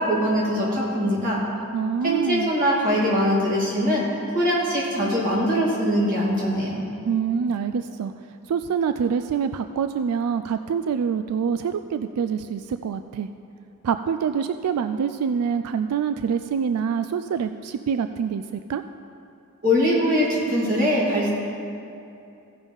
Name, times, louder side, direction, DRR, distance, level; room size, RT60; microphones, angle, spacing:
voice 1, 0.0-1.4 2.0-4.0 4.3-6.8 19.6-21.3, equal, 40° right, -6 dB, 2.6 m, -22 dB
voice 2, 1.7-2.5 7.0-8.1 8.5-13.3 13.8-18.8, right 7 dB, 85° right, 10 dB, 0.3 m, -25 dB
16.0 x 5.3 x 5.4 m, 2.7 s
head